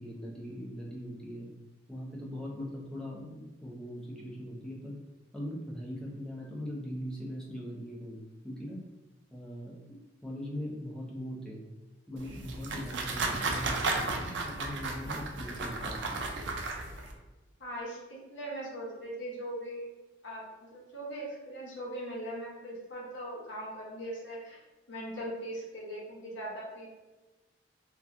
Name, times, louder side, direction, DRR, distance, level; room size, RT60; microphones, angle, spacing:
voice 1, 0.0-1.5 1.9-5.0 5.3-8.8 9.3-10.0 10.2-11.6 12.1-16.2, equal, 5° left, -5 dB, 0.5 m, -40 dB
sound 1, 12.2-17.1, right 3 dB, 70° right, 0.4 m, -34 dB
voice 2, 17.6-19.9 20.2-24.6 24.9-26.9, right 1 dB, 85° left, -3 dB, 0.8 m, -40 dB
2.9 x 2.3 x 2.5 m, 1.2 s
head